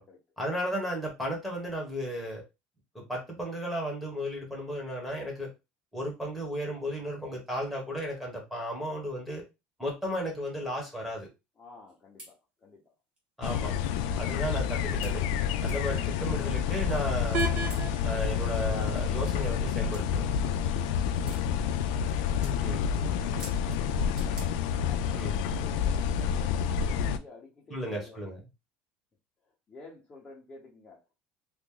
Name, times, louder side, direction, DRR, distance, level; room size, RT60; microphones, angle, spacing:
voice 1, 0.4-2.4 2.9-5.5 5.9-9.4 9.8-11.3 13.4-13.7 14.1-15.2 15.6-17.5 18.0-20.3 22.6-22.8 25.1-25.4 27.7-28.4, equal, ahead, 1.2 m, -34 dB
voice 2, 11.6-12.9 22.0-24.5 24.8-28.2 29.5-31.1, left 3 dB, 20° left, 0.8 m, -52 dB
sound 1, 11.9-12.0 12.2-12.3 13.2-13.3 13.8-13.9 15.0-15.2 15.7-15.8 17.3-18.0 19.3-19.4 19.9-20.1 21.2-21.4 22.0-22.1 22.4-22.6 23.4-23.8 24.2-24.5, right 1 dB, 25° right, 1.4 m, -46 dB
sound 2, 13.4-27.2, left 7 dB, 90° left, 0.4 m, -29 dB
sound 3, 17.3-23.3, right 3 dB, 40° right, 0.6 m, -40 dB
3.0 x 2.5 x 3.7 m
cardioid pair, 160°, 4 cm